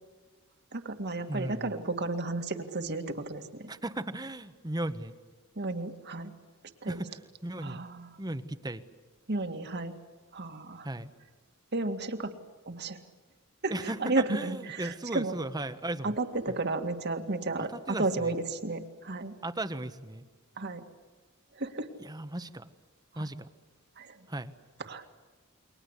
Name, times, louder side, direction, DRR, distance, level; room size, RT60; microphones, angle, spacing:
voice 1, 0.7-3.7 5.6-6.3 6.8-7.0 7.6-8.1 9.3-9.9 10.3-10.9 11.7-12.3 12.7-13.0 13.6-15.3 16.0-19.3 20.6-20.8 21.6-21.9 23.2-23.3 24.0-24.1 24.9-25.0, right 2 dB, 50° right, 7 dB, 2.2 m, -33 dB
voice 2, 1.3-1.8 3.7-5.1 6.9-7.8 8.2-8.8 10.8-11.1 13.7-16.1 16.5-16.6 17.7-18.3 19.4-20.2 22.0-22.7 23.1-23.5 24.3-24.5, right 1 dB, 20° right, 11 dB, 1.2 m, -36 dB
29.0 x 23.0 x 8.3 m, 1.4 s
head